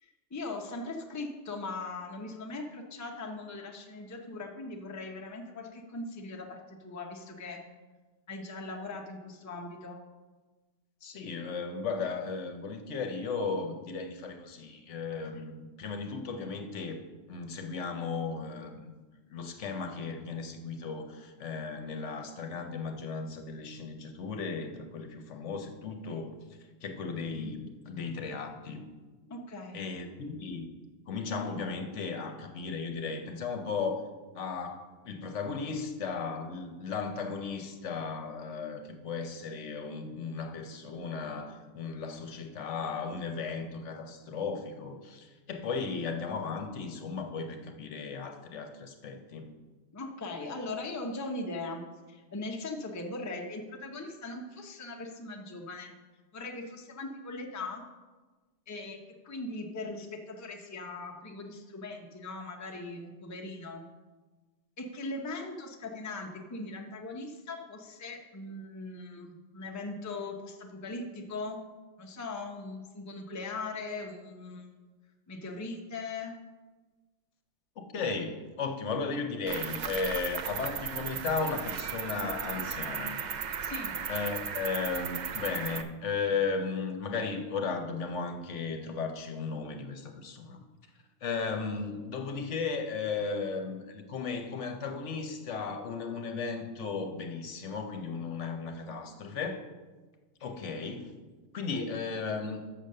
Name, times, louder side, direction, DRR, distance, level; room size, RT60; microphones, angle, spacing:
voice 1, 0.0-7.6 8.3-10.0 29.3-29.8 49.9-51.8 52.1-55.9 56.3-57.8 58.7-59.0 59.2-63.8 64.8-71.6 72.0-74.7 75.3-76.4 83.6-84.0, left 2 dB, 20° left, 2 dB, 0.6 m, -40 dB
voice 2, 11.0-15.5 15.8-17.0 17.3-18.9 19.3-26.3 26.8-28.8 29.7-30.6 31.1-34.1 34.3-49.5 77.8-83.2 83.6-83.7 84.1-90.6 91.2-99.6 100.4-101.1 101.5-102.6, left 4 dB, 65° left, 5 dB, 1.1 m, -35 dB
Cricket, 79.5-85.8, right 7 dB, 80° right, 0.4 m, -36 dB
6.9 x 5.8 x 6.5 m, 1.3 s
omnidirectional pair, 1.3 m